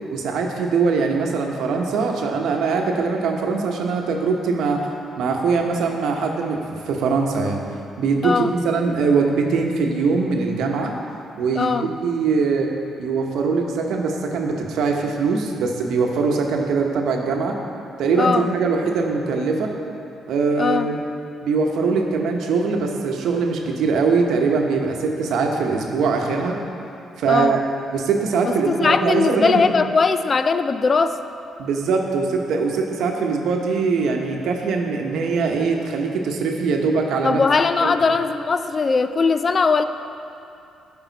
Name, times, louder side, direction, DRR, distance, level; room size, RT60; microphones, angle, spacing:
voice 1, 0.1-4.9 5.2-7.6 8.0-10.9 11.4-12.7 13.0-17.6 18.0-19.7 20.3-21.0 21.4-26.6 27.2-27.6 27.9-29.6 31.6-37.4 37.8-37.9, right 4 dB, 80° right, 2 dB, 0.9 m, -22 dB
voice 2, 11.6-11.9 18.2-18.5 20.6-20.9 27.3-27.6 28.6-31.2 37.2-39.8, left 4 dB, 40° left, 10 dB, 0.4 m, -19 dB
10.5 x 5.4 x 4.0 m, 2.6 s
cardioid pair, 90°, 0 cm